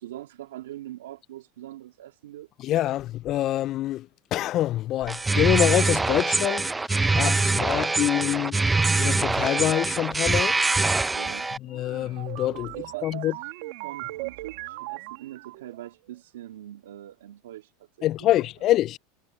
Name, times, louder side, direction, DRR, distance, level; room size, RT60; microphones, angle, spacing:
voice 1, 0.0-2.5 7.2-7.5 11.1-11.5 12.7-13.5 13.8-17.7 18.0-18.1, right 13 dB, 85° right, 2.1 m, -42 dB
voice 2, 2.6-6.7 7.2-8.6 9.0-10.6 11.6-12.8 13.0-13.3 18.0-19.0, left 14 dB, 45° left, 0.3 m, -25 dB
sound 1, 5.1-11.6, right 3 dB, 10° right, 0.5 m, -24 dB
sound 2, 11.7-15.9, right 22 dB, 65° right, 2.0 m, -38 dB
supercardioid pair, 110°, 0 cm